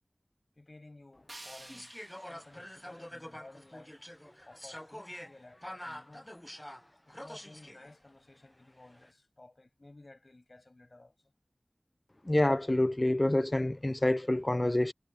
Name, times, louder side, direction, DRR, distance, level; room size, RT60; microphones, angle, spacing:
voice 1, 0.5-1.9 2.3-4.0 4.4-6.3 7.0-11.1, left 2 dB, 55° left, 6.9 m, -55 dB
sound 1, 1.3-4.3, right 1 dB, 45° right, 2.4 m, -53 dB
sound 2, 1.7-7.9 8.8-9.1, left 1 dB, 15° left, 0.7 m, -47 dB
voice 2, 12.3-14.9, left 1 dB, 35° left, 0.4 m, -27 dB
wide cardioid pair, 45°, 0 cm